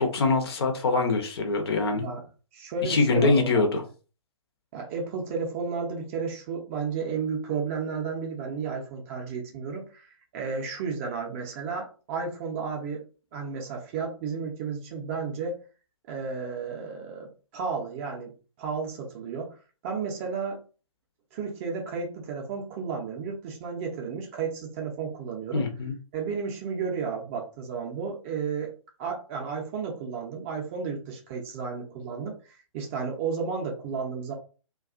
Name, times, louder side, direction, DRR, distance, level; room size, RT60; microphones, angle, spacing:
voice 1, 0.0-2.1 2.8-3.8 25.5-25.9, left 3 dB, 45° left, 4 dB, 0.6 m, -24 dB
voice 2, 2.5-3.5 4.7-13.0 13.3-15.6 16.1-18.3 18.6-19.5 19.8-20.6 21.3-25.7 26.1-28.7 29.0-34.3, right 5 dB, 25° right, 1 dB, 0.5 m, -33 dB
2.3 x 2.3 x 2.4 m, 0.36 s
figure-of-eight pair, 125°, 17 cm